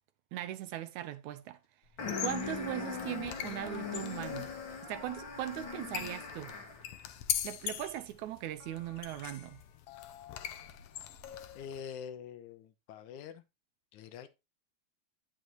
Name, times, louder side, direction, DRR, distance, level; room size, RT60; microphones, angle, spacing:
voice 1, 0.3-1.6 2.2-4.5 4.8-6.6 7.4-9.6, right 13 dB, 85° right, 2.2 m, -39 dB
sound 1, 2.0-11.8, left 11 dB, 70° left, 1.6 m, -42 dB
sound 2, 2.0-6.9, left 4 dB, 45° left, 2.2 m, -40 dB
voice 2, 11.6-13.4 13.9-14.3, left 8 dB, 85° left, 2.4 m, -45 dB
10.5 x 6.4 x 3.0 m
omnidirectional pair, 3.4 m